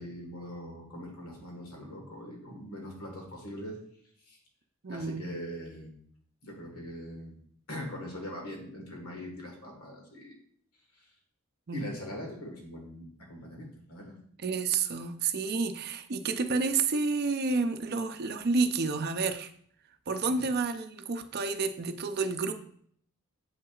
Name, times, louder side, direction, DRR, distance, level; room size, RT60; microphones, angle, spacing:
voice 1, 0.0-3.8 4.3-4.4 4.9-5.9 6.4-7.4 7.7-10.4 11.0-11.1 11.7-14.2 20.2-20.4, equal, 85° left, 1 dB, 1.6 m, -42 dB
voice 2, 4.8-5.3 11.7-11.9 14.4-19.5 20.1-22.5, right 4 dB, 45° right, 9 dB, 0.5 m, -30 dB
7.9 x 5.8 x 2.4 m, 0.62 s
head